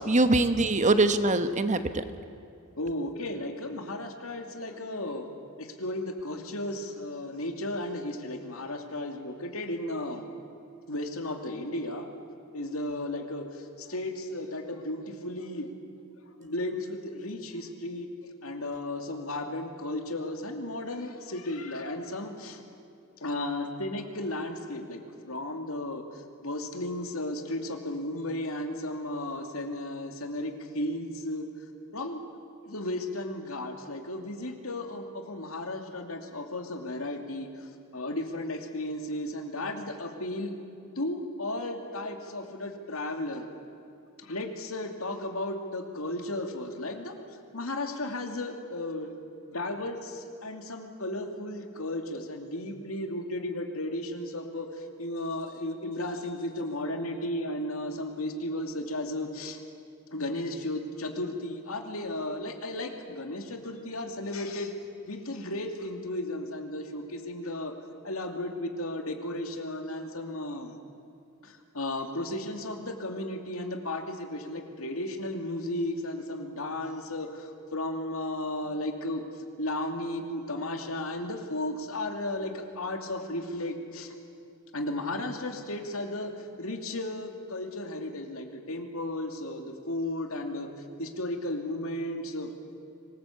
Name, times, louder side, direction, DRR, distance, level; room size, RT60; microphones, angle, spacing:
voice 1, 0.0-2.0, right 2 dB, 35° right, 10 dB, 1.1 m, -23 dB
voice 2, 2.8-5.3 5.6-10.3 10.9-12.1 12.5-15.7 16.4-22.6 23.2-31.5 31.9-32.2 32.6-40.5 41.0-43.5 44.2-49.1 49.5-59.6 60.1-64.7 65.1-67.7 68.0-70.8 71.4-79.2 79.6-84.1 84.7-90.7 91.0-92.5, left 1 dB, 70° left, 4 dB, 2.6 m, -34 dB
25.5 x 20.0 x 8.5 m, 2.6 s
head